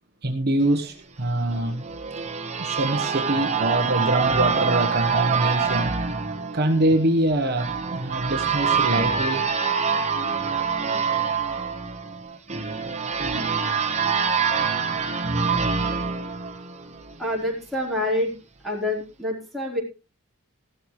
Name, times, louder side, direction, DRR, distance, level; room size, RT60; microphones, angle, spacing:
voice 1, 0.2-1.9 2.6-6.0 6.5-9.5 13.3-13.5, right 1 dB, 45° right, 1.2 m, -24 dB
sound 1, 1.5-17.2, right 5 dB, 30° right, 1.6 m, -25 dB
voice 2, 17.2-18.3 18.6-19.8, left 1 dB, ahead, 4.1 m, -26 dB
16.0 x 12.5 x 3.2 m
head